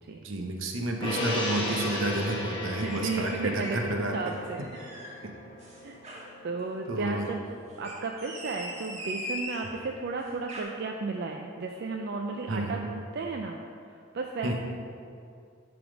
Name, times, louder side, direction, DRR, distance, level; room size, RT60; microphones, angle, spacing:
voice 1, 0.2-4.4 5.2-5.3 6.9-7.3 12.5-12.8 14.4-14.5, right 2 dB, 75° right, 2 dB, 0.9 m, -30 dB
Gong, 1.0-7.6 8.0-8.1, left 2 dB, 25° left, 1.1 m, -36 dB
voice 2, 2.5-4.9 5.8-6.0 6.4-7.4 7.8-13.6 13.9-14.5, right 3 dB, 55° right, 1 dB, 0.4 m, -34 dB
sound 1, 2.7-3.9 4.2-5.2 5.6-6.3 7.7-9.7 10.3-10.6, equal, 35° right, 1.6 m, -40 dB
9.2 x 3.5 x 5.0 m, 2.4 s
head